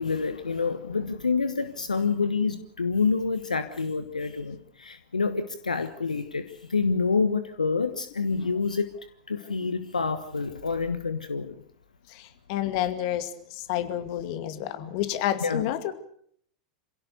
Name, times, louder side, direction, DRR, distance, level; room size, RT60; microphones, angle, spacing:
voice 1, 0.0-8.9 9.3-11.5 15.4-15.7, left 4 dB, 85° left, 10 dB, 1.2 m, -27 dB
voice 2, 12.1-13.3 13.7-15.9, left 12 dB, 55° left, 9 dB, 2.4 m, -29 dB
27.0 x 17.0 x 6.8 m, 0.64 s
figure-of-eight pair, 90°, 4 cm